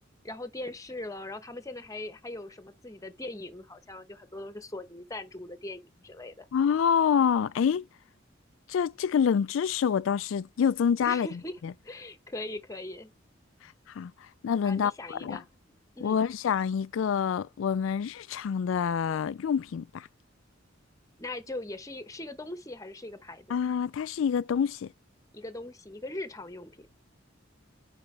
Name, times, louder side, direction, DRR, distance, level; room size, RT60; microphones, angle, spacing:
voice 1, 0.2-6.5 11.0-11.6 11.8-13.1 14.6-15.5 16.0-16.3 21.2-23.6 25.3-26.9, left 2 dB, 15° left, 1.0 m, -40 dB
voice 2, 6.5-7.8 8.7-11.3 13.6-14.1 14.4-15.4 16.0-20.1 23.5-24.9, left 7 dB, 90° left, 0.3 m, -27 dB
8.9 x 4.7 x 3.3 m
head